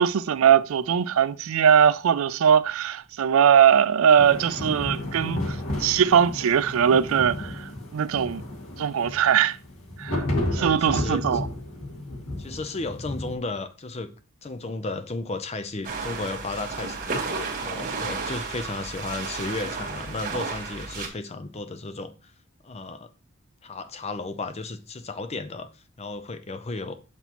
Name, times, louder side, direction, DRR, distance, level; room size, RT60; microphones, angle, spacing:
voice 1, 0.0-7.5 7.9-8.4 8.8-9.6 10.0-10.2 10.5-11.5, right 8 dB, 75° right, 0.4 m, -20 dB
sound 1, 4.2-13.3, left 1 dB, 85° left, 2.0 m, -32 dB
voice 2, 10.6-11.4 12.4-14.1 14.4-22.3 22.6-23.1 23.6-27.0, left 3 dB, 30° left, 0.6 m, -34 dB
sound 2, 15.8-21.1, right 4 dB, 40° right, 1.5 m, -32 dB
6.8 x 6.0 x 3.0 m
head